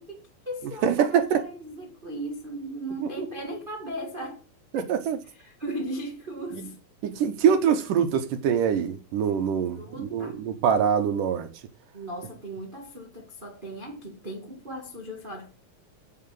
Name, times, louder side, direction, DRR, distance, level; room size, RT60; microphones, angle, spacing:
voice 1, 0.0-4.4 4.7-4.9 5.3-6.7 9.8-10.4 11.9-15.5, right 1 dB, 90° right, 0.4 m, -37 dB
voice 2, 0.8-1.5 4.7-5.2 6.6-6.7 7.0-11.5, right 8 dB, 70° right, 2.6 m, -24 dB
7.7 x 7.0 x 7.7 m
omnidirectional pair, 4.0 m